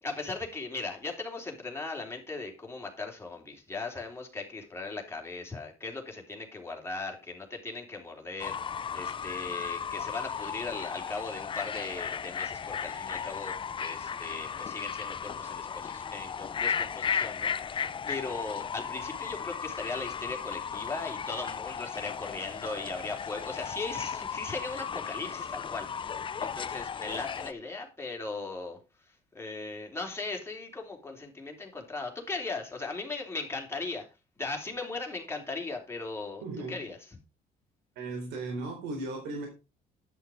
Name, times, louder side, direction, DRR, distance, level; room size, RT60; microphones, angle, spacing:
voice 1, 0.0-28.8 29.3-34.0 34.4-36.4 36.7-37.1, left 3 dB, 15° left, 3.4 m, -38 dB
Fowl / Bird, 8.4-27.5, left 7 dB, 30° left, 0.5 m, -35 dB
voice 2, 36.4-36.8 38.0-39.5, right 2 dB, 90° right, 3.9 m, -36 dB
11.0 x 6.5 x 5.0 m
cardioid pair, 110°, 17 cm